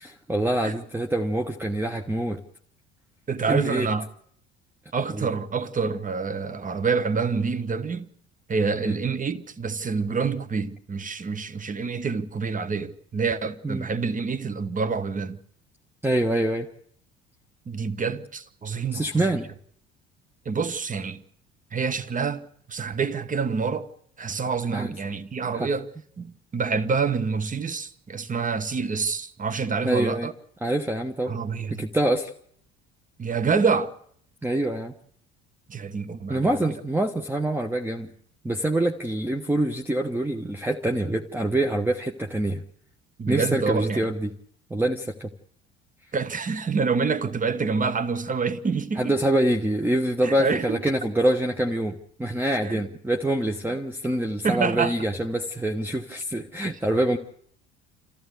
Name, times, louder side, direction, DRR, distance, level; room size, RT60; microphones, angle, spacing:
voice 1, 0.0-2.4 3.5-3.9 5.2-5.3 8.8-9.0 13.6-13.9 16.0-16.7 18.9-19.5 24.7-25.0 25.5-25.7 29.8-30.3 30.6-31.3 31.8-32.3 34.4-34.9 36.3-38.1 38.4-42.6 43.3-44.3 44.7-45.3 49.0-57.2, right 1 dB, 5° right, 1.1 m, -25 dB
voice 2, 3.3-4.1 4.9-8.1 8.5-15.4 17.7-19.3 20.4-21.2 21.7-23.9 24.2-25.9 26.2-30.3 31.3-31.9 33.2-34.0 35.7-36.6 43.2-44.1 46.1-49.2 50.2-50.9 52.6-52.9 54.4-55.0 56.6-56.8, right 5 dB, 25° right, 1.3 m, -27 dB
27.5 x 14.5 x 8.1 m
figure-of-eight pair, 60°, 32 cm